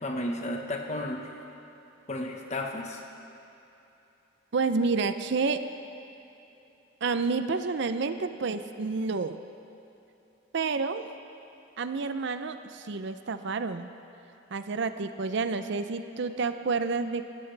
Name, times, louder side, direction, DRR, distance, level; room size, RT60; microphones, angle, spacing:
voice 1, 0.0-1.3 2.1-3.0, left 1 dB, 35° left, 2 dB, 1.2 m, -33 dB
voice 2, 4.5-5.6 7.0-9.4 10.5-11.1 11.8-13.9 14.5-17.3, right 4 dB, 60° right, 10 dB, 0.5 m, -29 dB
17.5 x 14.5 x 3.3 m, 3.0 s
head